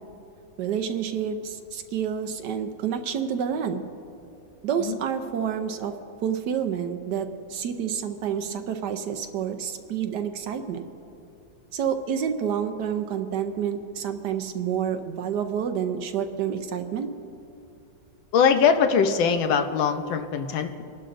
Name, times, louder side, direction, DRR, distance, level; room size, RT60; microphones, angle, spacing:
voice 1, 0.6-3.8 4.6-5.9 6.2-10.8 11.7-17.1, right 8 dB, 70° right, 7 dB, 1.2 m, -29 dB
voice 2, 18.3-20.8, left 6 dB, 85° left, 7 dB, 1.5 m, -22 dB
27.5 x 11.5 x 2.6 m, 2.8 s
omnidirectional pair, 2.1 m